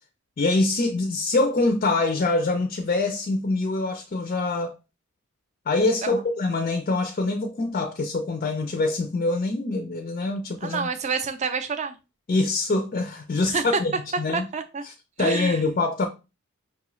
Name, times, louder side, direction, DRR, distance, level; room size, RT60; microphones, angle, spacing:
voice 1, 0.4-4.7 5.7-10.9 12.3-13.9 14.2-14.5 15.2-16.1, left 2 dB, 40° left, 0.4 m, -24 dB
voice 2, 10.6-12.0 13.4-13.7 14.3-14.8 15.2-15.6, right 5 dB, 30° right, 0.4 m, -28 dB
5.3 x 2.4 x 3.0 m
head